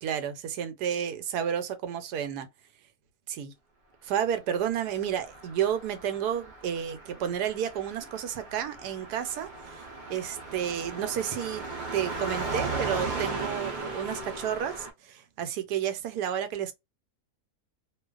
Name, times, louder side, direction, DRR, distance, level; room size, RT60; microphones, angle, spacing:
voice 1, 0.0-2.5 3.3-3.5 4.0-9.8 10.1-11.6 11.9-16.7, right 9 dB, 85° right, 1.1 m, -31 dB
Car passing by, 5.0-14.9, right 3 dB, 55° right, 0.5 m, -37 dB
2.5 x 2.3 x 2.3 m
omnidirectional pair, 1.7 m